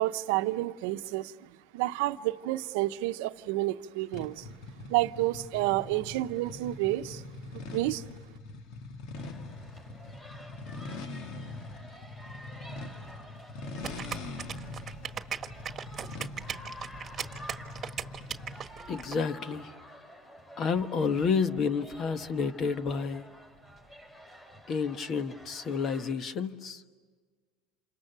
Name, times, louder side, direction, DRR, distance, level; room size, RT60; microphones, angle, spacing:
voice 1, 0.0-1.3 1.7-4.5 4.9-7.2 7.5-8.0, right 17 dB, 80° right, 0.8 m, -30 dB
sound 1, 4.1-18.8, left 3 dB, 65° left, 1.8 m, -43 dB
sound 2, 9.2-26.1, equal, 20° left, 5.9 m, -50 dB
sound 3, 13.8-19.2, right 8 dB, 30° right, 1.5 m, -38 dB
voice 2, 18.9-19.7 20.6-23.2 24.7-26.8, left 5 dB, 40° left, 1.3 m, -30 dB
28.5 x 28.0 x 6.9 m
supercardioid pair, 120°, 0 cm